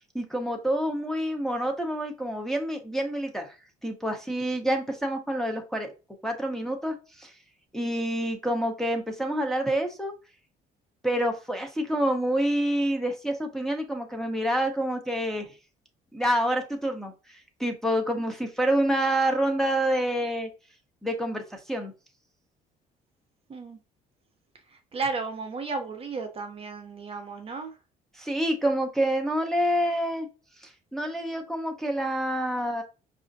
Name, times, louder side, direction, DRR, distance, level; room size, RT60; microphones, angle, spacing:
voice 1, 0.1-3.6 3.8-5.9 6.2-7.3 7.7-10.1 11.0-15.5 16.1-20.5 21.0-21.9 28.2-30.3 30.6-32.8, right 1 dB, ahead, 0.6 m, -27 dB
voice 2, 24.9-27.7, right 4 dB, 35° right, 0.6 m, -33 dB
4.8 x 2.4 x 2.6 m
cardioid pair, 110°, 17 cm